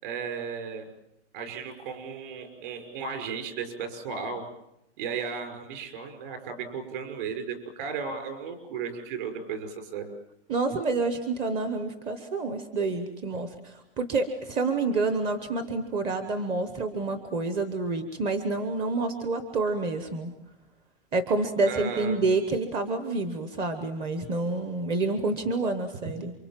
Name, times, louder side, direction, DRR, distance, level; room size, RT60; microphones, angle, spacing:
voice 1, 0.0-0.9 1.3-4.4 5.0-10.1 21.7-22.2, right 6 dB, 45° right, 5 dB, 5.9 m, -35 dB
voice 2, 10.5-20.3 21.1-26.3, right 3 dB, 15° right, 8 dB, 1.0 m, -28 dB
28.5 x 24.5 x 7.5 m, 0.89 s
hypercardioid pair, 165°, 35 cm